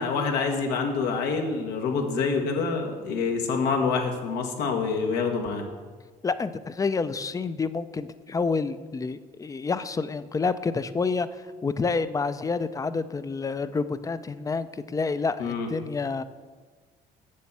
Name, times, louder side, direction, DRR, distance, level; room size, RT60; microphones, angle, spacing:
voice 1, 0.0-5.6 15.4-15.7, left 4 dB, 85° left, 2 dB, 1.5 m, -26 dB
voice 2, 6.2-11.3 11.6-16.2, left 4 dB, 20° left, 14 dB, 0.4 m, -28 dB
7.4 x 6.8 x 7.3 m, 1.4 s
cardioid pair, 110°, 17 cm